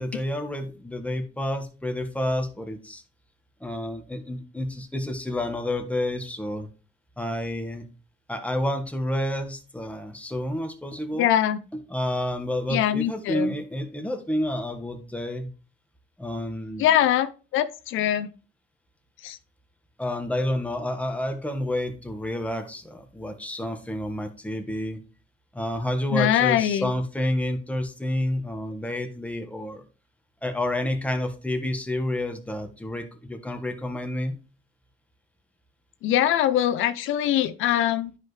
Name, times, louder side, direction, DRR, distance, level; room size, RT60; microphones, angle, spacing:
voice 1, 0.0-3.0 3.6-6.7 7.2-7.8 8.3-11.3 11.7-15.5 16.2-16.9 20.0-25.0 25.5-29.8 30.4-34.4, left 1 dB, 5° left, 5 dB, 1.5 m, -29 dB
voice 2, 11.2-11.6 12.7-13.5 16.8-17.3 17.5-18.3 19.2-19.4 26.1-26.9 36.0-38.1, left 11 dB, 85° left, 11 dB, 0.6 m, -22 dB
10.0 x 5.1 x 3.2 m, 0.34 s
cardioid pair, 90°, 20 cm